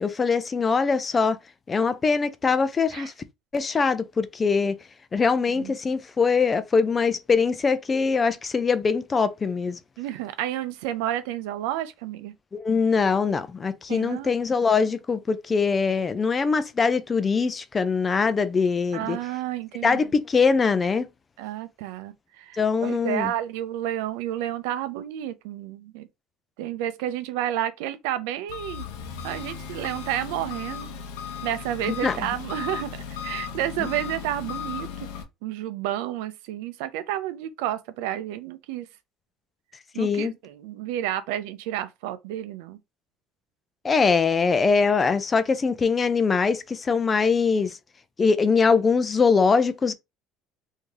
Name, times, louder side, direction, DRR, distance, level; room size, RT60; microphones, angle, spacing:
voice 1, 0.0-1.4 1.7-3.1 3.5-4.7 5.1-9.8 12.5-19.2 19.8-21.1 22.6-23.3 31.9-32.2 33.8-33.9 40.0-40.3 43.8-47.8 48.2-49.9, left 5 dB, 25° left, 0.5 m, -22 dB
voice 2, 10.0-12.3 13.9-14.3 18.9-20.0 21.4-26.1 26.6-28.8 29.2-30.9 31.4-32.9 33.2-34.9 35.4-38.9 39.9-42.8, right 12 dB, 85° right, 0.5 m, -30 dB
Engine, 28.5-35.2, left 7 dB, 90° left, 0.8 m, -36 dB
3.1 x 2.7 x 3.5 m
supercardioid pair, 105°, 0 cm